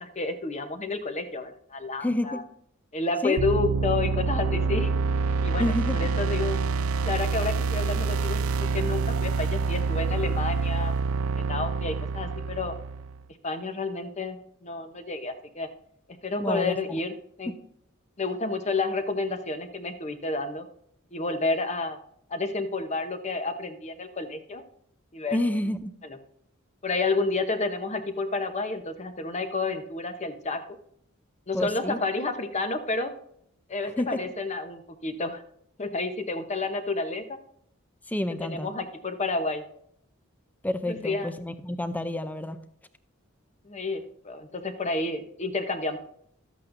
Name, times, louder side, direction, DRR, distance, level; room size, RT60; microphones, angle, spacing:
voice 1, 0.0-2.4 2.9-4.9 5.4-5.7 6.0-6.6 7.0-8.4 8.7-10.9 11.3-12.7 13.4-15.7 16.2-17.1 17.4-17.5 18.2-20.7 21.1-22.0 22.3-24.6 25.1-25.4 26.0-26.2 26.8-30.6 31.5-33.1 33.7-35.4 35.8-37.4 38.4-39.6 40.9-41.3 43.6-46.0, left 3 dB, 35° left, 7 dB, 0.9 m, -30 dB
voice 2, 2.0-2.4 3.2-3.4 5.6-6.1 16.4-17.0 25.3-25.9 31.5-32.0 34.0-34.2 38.1-38.7 40.6-42.6, left 1 dB, 10° left, 11 dB, 0.5 m, -29 dB
sound 1, 3.4-13.2, right 4 dB, 80° right, 0.4 m, -27 dB
12.5 x 8.3 x 2.6 m, 0.69 s
head